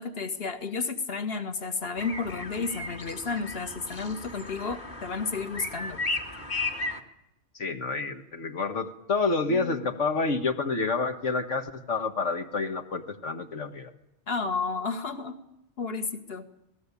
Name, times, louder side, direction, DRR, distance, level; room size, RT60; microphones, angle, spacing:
voice 1, 0.0-6.0 9.5-9.8 14.3-15.4 15.8-16.5, left 4 dB, 55° left, 7 dB, 2.0 m, -32 dB
sound 1, 2.0-7.0, left 2 dB, 40° left, 2.3 m, -35 dB
voice 2, 7.6-13.9, left 3 dB, 85° left, 5 dB, 1.9 m, -29 dB
27.0 x 19.0 x 8.5 m, 0.85 s
omnidirectional pair, 1.2 m